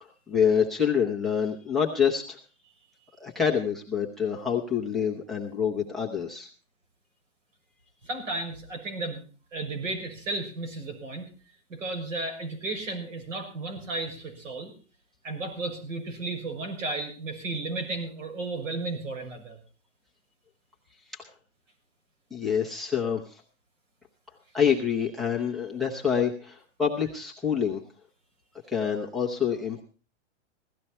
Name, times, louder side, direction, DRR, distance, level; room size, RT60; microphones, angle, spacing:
voice 1, 0.0-2.4 3.2-6.5 21.1-21.3 22.3-23.4 24.5-27.8 28.7-29.8, left 7 dB, ahead, 3 dB, 0.7 m, -27 dB
voice 2, 8.0-9.2 9.5-11.3 11.7-14.7 15.2-19.6, right 2 dB, 90° right, 5 dB, 6.4 m, -34 dB
17.0 x 13.5 x 4.3 m, 0.37 s
supercardioid pair, 175°, 37 cm